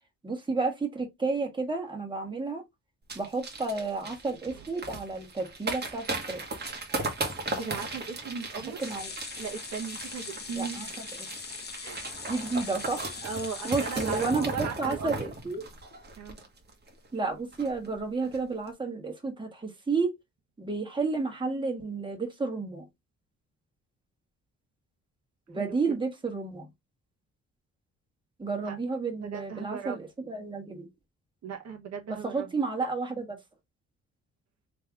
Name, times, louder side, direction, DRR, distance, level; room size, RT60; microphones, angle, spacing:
voice 1, 0.2-2.6 3.1-6.4 8.8-9.1 10.5-10.9 12.3-13.1 13.6-15.6 17.1-20.1 20.6-22.9 25.5-26.7 28.4-30.9 32.2-33.4, right 4 dB, 15° right, 1.6 m, -31 dB
sound 1, 3.1-16.9 17.2-17.3 17.5-17.9 18.2-18.4, right 2 dB, 35° right, 1.5 m, -37 dB
voice 2, 7.6-8.8 9.4-11.0 11.8-12.3 13.2-15.3 16.2-16.4 25.5-26.0 28.6-28.8 29.2-30.0 31.4-32.5, right 6 dB, 60° right, 1.2 m, -38 dB
sound 2, 8.8-15.1 15.5-15.6 15.9-16.0, left 5 dB, 35° left, 1.1 m, -42 dB
3.5 x 3.3 x 3.4 m
cardioid pair, 90°, 30 cm